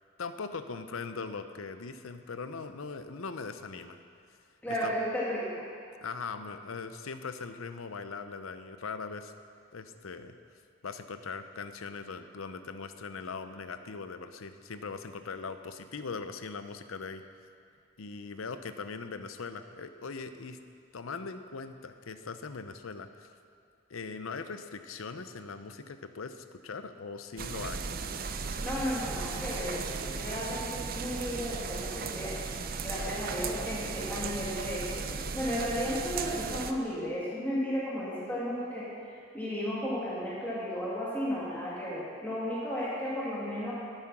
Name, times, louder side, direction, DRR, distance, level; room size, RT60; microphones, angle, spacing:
voice 1, 0.2-4.0 4.7-4.9 6.0-9.3 9.7-10.3 10.8-17.2 18.0-20.6 20.9-23.3 23.9-27.8, left 4 dB, 85° left, 9 dB, 0.7 m, -40 dB
voice 2, 4.6-5.7 28.6-32.3 32.8-35.1 35.3-38.9 39.3-43.7, equal, 10° left, -8 dB, 1.9 m, -34 dB
sound 1, 27.4-36.7, right 5 dB, 45° right, 0.5 m, -36 dB
12.5 x 8.7 x 6.0 m, 2.3 s
head